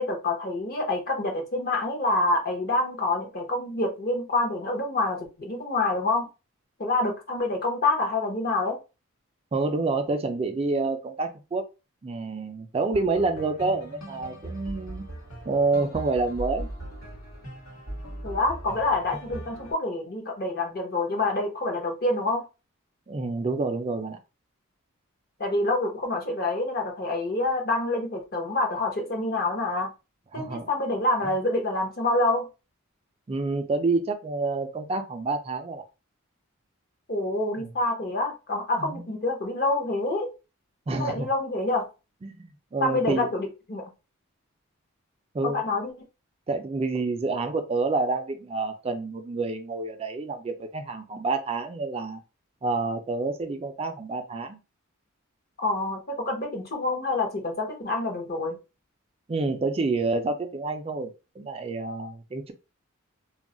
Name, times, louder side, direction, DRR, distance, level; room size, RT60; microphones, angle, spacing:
voice 1, 0.0-6.3 6.8-8.8 18.2-22.4 25.4-29.9 30.3-32.5 37.1-40.3 41.0-41.9 42.8-43.8 45.4-45.9 55.6-58.6, left 2 dB, 45° left, 0.7 m, -27 dB
voice 2, 9.5-11.6 12.0-15.0 15.5-16.7 23.1-24.2 30.3-30.7 33.3-35.8 37.6-37.7 38.8-39.0 40.9-41.3 42.2-43.3 45.3-45.6 46.5-52.2 52.6-54.6 59.3-62.5, right 3 dB, 25° right, 0.3 m, -28 dB
sound 1, 12.9-19.7, right 1 dB, 80° left, 1.1 m, -39 dB
2.3 x 2.0 x 3.7 m
head